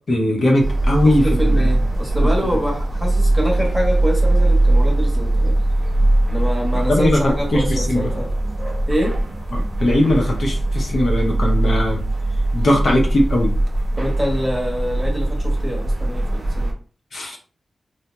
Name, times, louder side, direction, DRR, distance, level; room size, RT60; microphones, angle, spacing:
voice 1, 0.1-1.7 6.7-8.1 9.5-12.0 12.5-13.5 17.1-17.4, left 1 dB, 60° left, 1 dB, 0.6 m, -19 dB
sound 1, 0.6-16.7, right 1 dB, 35° right, 0.7 m, -20 dB
voice 2, 1.0-5.5 6.3-8.3 8.9-9.2 14.0-16.7, equal, ahead, -2 dB, 0.9 m, -25 dB
2.8 x 2.0 x 2.2 m, 0.41 s
wide cardioid pair, 110°, 0 cm